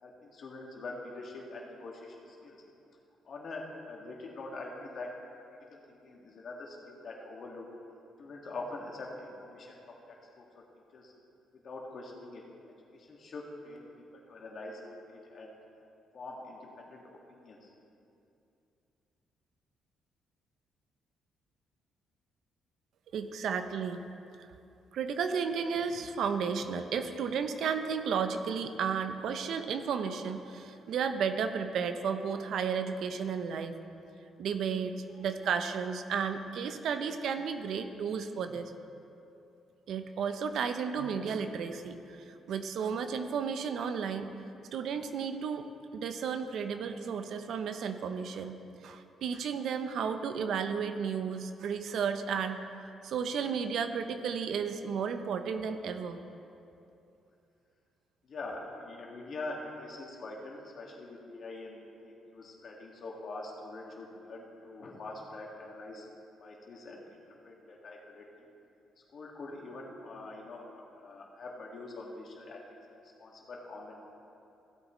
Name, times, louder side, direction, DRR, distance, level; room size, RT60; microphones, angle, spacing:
voice 1, 0.0-2.6 3.2-5.1 5.7-7.7 8.2-9.8 10.4-10.6 10.9-11.1 11.6-12.4 12.9-14.8 15.1-15.5 16.1-17.7 58.2-66.1 66.4-68.3 69.1-72.6 72.9-73.9, left 2 dB, 55° left, -1 dB, 1.8 m, -44 dB
voice 2, 23.1-24.0 24.4-24.5 24.9-33.8 34.4-38.7 39.9-44.3 44.7-48.6 48.8-52.6 53.0-56.2, right 6 dB, 70° right, 9 dB, 0.6 m, -33 dB
16.0 x 8.1 x 3.1 m, 2.7 s
cardioid pair, 90°, 0 cm